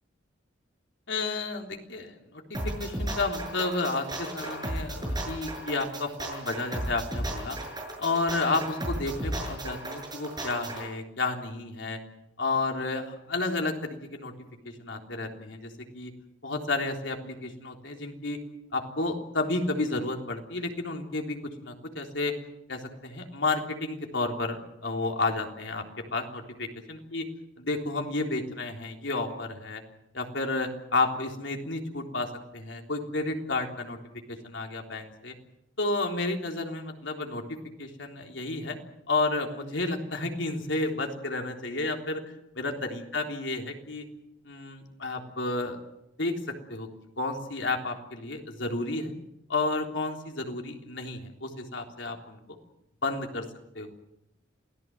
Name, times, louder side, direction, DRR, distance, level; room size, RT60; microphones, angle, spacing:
voice 1, 1.1-7.6 8.0-12.0 12.4-14.3 14.6-16.1 16.4-18.4 18.7-22.3 22.7-25.8 26.1-27.3 27.6-29.8 30.1-34.0 34.3-35.3 35.8-37.4 37.8-38.8 39.1-42.2 42.6-44.0 44.4-45.8 46.2-46.9 47.2-49.1 49.5-52.6 53.0-53.5 53.7-53.9, left 3 dB, 70° left, 2 dB, 3.6 m, -31 dB
sound 1, 2.5-10.8, right 1 dB, 20° right, 7.1 m, -34 dB
28.0 x 18.0 x 7.8 m, 0.84 s
head